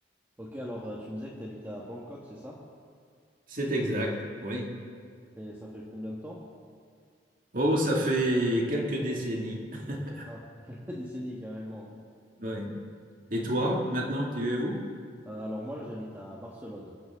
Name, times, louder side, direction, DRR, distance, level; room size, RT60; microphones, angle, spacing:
voice 1, 0.4-2.6 5.3-6.4 10.3-11.9 15.2-16.9, equal, 10° right, -4 dB, 1.6 m, -39 dB
voice 2, 3.5-4.2 4.4-4.7 7.5-10.3 12.4-12.7 13.3-14.8, right 1 dB, 50° right, -1 dB, 2.3 m, -28 dB
24.5 x 14.0 x 3.7 m, 2.1 s
head